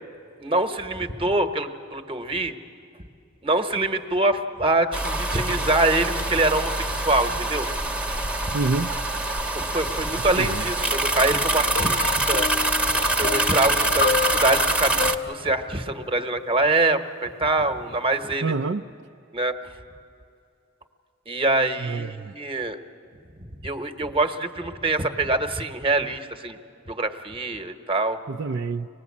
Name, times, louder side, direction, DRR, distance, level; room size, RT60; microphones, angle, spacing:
voice 1, 0.4-2.5 3.4-7.7 9.5-12.5 13.2-18.5 19.3-19.6 21.3-22.8 23.6-26.6 26.9-28.2, right 2 dB, 25° right, 8 dB, 1.1 m, -24 dB
sound 1, 4.9-15.2, right 2 dB, 5° right, 0.9 m, -25 dB
voice 2, 8.5-9.0 10.3-10.7 18.4-18.9 21.8-22.4 28.3-28.9, right 3 dB, 60° right, 5 dB, 0.5 m, -27 dB
sound 2, 11.7-16.9 17.8-17.9, left 5 dB, 45° left, 0.6 m, -31 dB
24.5 x 19.5 x 8.4 m, 2.6 s
head